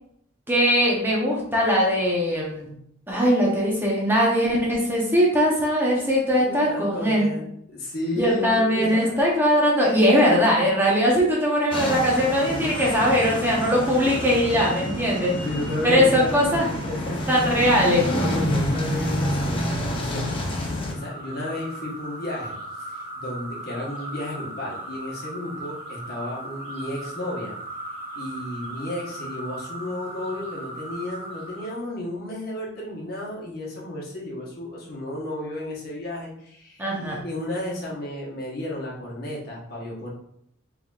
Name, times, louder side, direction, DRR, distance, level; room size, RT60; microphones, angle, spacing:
voice 1, 0.5-2.7 3.1-7.3 8.2-15.3 15.8-16.7 17.3-18.1 36.8-37.2, equal, 10° right, -4 dB, 0.7 m, -20 dB
voice 2, 6.3-9.1 15.4-17.5 18.1-27.6 28.1-40.1, left 1 dB, 50° left, -4 dB, 1.1 m, -33 dB
sound 1, 11.7-20.9, left 1 dB, 25° left, 0.5 m, -28 dB
sound 2, 20.9-31.7, right 1 dB, 30° right, 1.4 m, -37 dB
3.8 x 3.4 x 2.4 m, 0.72 s
head